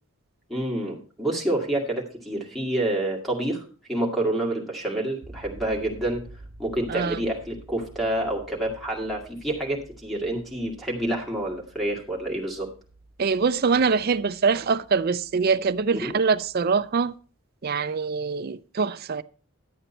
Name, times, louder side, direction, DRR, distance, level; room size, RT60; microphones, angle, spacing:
voice 1, 0.5-3.6 3.9-6.2 6.6-12.7 15.9-16.2, right 1 dB, ahead, 2.1 m, -28 dB
sound 1, 5.2-17.1, right 2 dB, 35° left, 4.1 m, -49 dB
voice 2, 6.9-7.2 13.2-17.2 17.6-19.2, right 5 dB, 45° right, 0.4 m, -24 dB
11.5 x 8.0 x 4.3 m
head